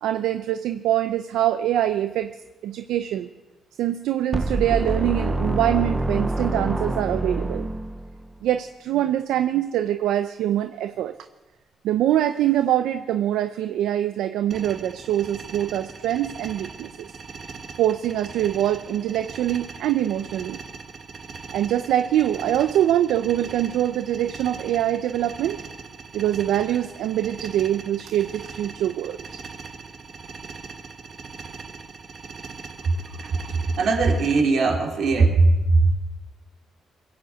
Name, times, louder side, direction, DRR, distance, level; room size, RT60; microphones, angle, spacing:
voice 1, 0.0-2.4 2.6-3.3 3.8-7.7 8.4-11.2 11.8-17.1 17.8-20.6 21.5-25.6 26.1-29.4, right 12 dB, 85° right, 9 dB, 0.6 m, -24 dB
sound 1, 4.3-8.3, right 2 dB, 15° right, 0.8 m, -26 dB
sound 2, 14.5-34.4, right 5 dB, 50° right, 1.9 m, -40 dB
voice 2, 33.8-35.9, right 3 dB, 65° right, 1 dB, 3.4 m, -19 dB
21.5 x 8.0 x 8.2 m, 1.1 s
cardioid pair, 90°, 0 cm